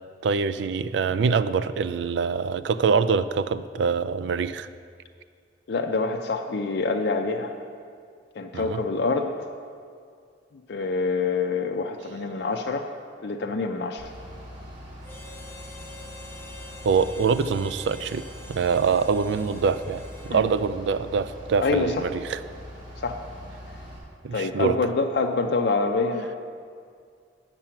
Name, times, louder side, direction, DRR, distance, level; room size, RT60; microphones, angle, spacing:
voice 1, 0.2-4.7 8.5-8.8 16.8-20.0 20.3-22.4 24.2-24.8, right 5 dB, 75° right, 14 dB, 0.3 m, -24 dB
voice 2, 5.7-7.5 8.4-9.3 10.7-12.9 13.2-14.1 20.3-20.4 21.6-22.0 23.0-23.2 24.3-26.4, left 3 dB, 65° left, 3 dB, 0.5 m, -26 dB
Bus / Idling, 14.0-24.0, equal, 40° right, 2.8 m, -42 dB
Harmonica, 15.0-20.7, left 3 dB, 15° left, 0.7 m, -46 dB
8.9 x 6.7 x 5.7 m, 2.2 s
head